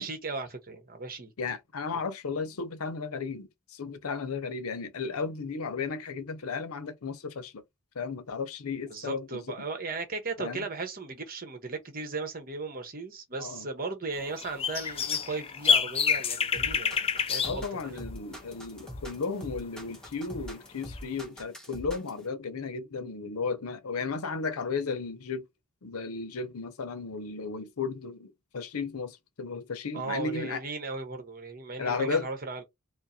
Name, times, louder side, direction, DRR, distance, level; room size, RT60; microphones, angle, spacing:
voice 1, 0.0-1.3 8.9-18.0 29.9-32.6, right 3 dB, 40° right, 1.1 m, -37 dB
voice 2, 1.4-7.6 8.0-9.4 10.4-10.6 13.4-13.7 17.4-25.5 25.8-30.6 31.8-32.3, left 4 dB, 80° left, 0.7 m, -34 dB
sound 1, 14.3-17.6 17.9-18.1 21.0-21.1, left 6 dB, 25° left, 0.4 m, -27 dB
sound 2, 16.6-22.2, equal, 5° left, 1.2 m, -42 dB
4.7 x 2.2 x 2.7 m
head